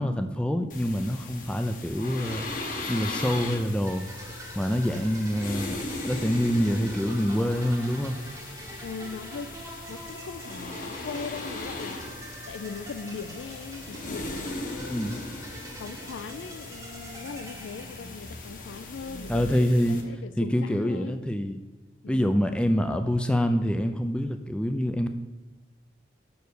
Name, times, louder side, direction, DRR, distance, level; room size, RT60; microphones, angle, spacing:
voice 1, 0.0-2.5 2.9-4.1 4.6-8.2 14.8-15.2 19.3-20.0 20.4-21.6 22.1-25.1, equal, 5° left, 0.3 m, -26 dB
sound 1, 0.7-20.0, left 2 dB, 45° left, 1.0 m, -38 dB
sound 2, 3.9-18.6, right 2 dB, 20° right, 0.9 m, -45 dB
voice 2, 8.8-9.5 9.9-12.0 12.5-15.3 15.8-21.2 22.0-22.4, left 5 dB, 85° left, 0.4 m, -39 dB
6.4 x 4.7 x 6.7 m
head